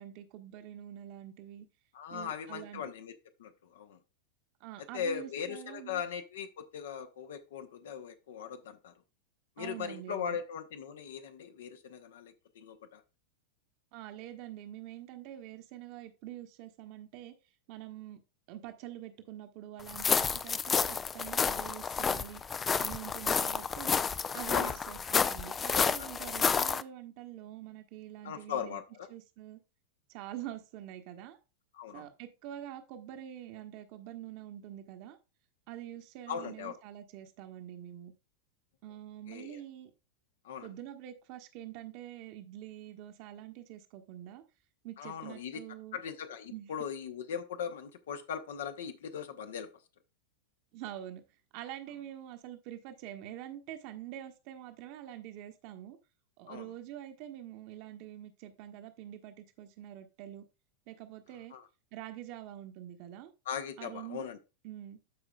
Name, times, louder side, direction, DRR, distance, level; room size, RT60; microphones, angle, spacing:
voice 1, 0.0-1.7 2.1-2.9 4.6-6.0 9.6-10.4 13.9-17.3 17.7-18.2 18.5-22.4 22.8-24.0 24.3-28.8 29.1-29.6 30.1-31.4 31.9-35.2 35.7-38.1 38.8-39.9 40.6-44.4 44.8-46.0 46.5-46.7 50.7-51.2 51.5-56.0 56.4-60.4 60.9-61.5 61.9-63.3 63.8-64.2 64.6-65.0, right 12 dB, 45° right, 1.1 m, -45 dB
voice 2, 1.9-3.1 3.4-4.0 4.9-8.9 9.6-13.0 24.5-24.7 25.7-26.1 28.2-29.1 31.7-32.1 36.3-36.7 39.3-39.6 40.4-40.7 45.0-45.6 45.9-49.7 56.5-56.7 61.5-61.7 63.5-64.4, left 7 dB, 60° left, 0.9 m, -39 dB
sound 1, 19.9-26.8, left 6 dB, 20° left, 0.4 m, -30 dB
13.5 x 4.9 x 2.3 m
figure-of-eight pair, 90°, 0 cm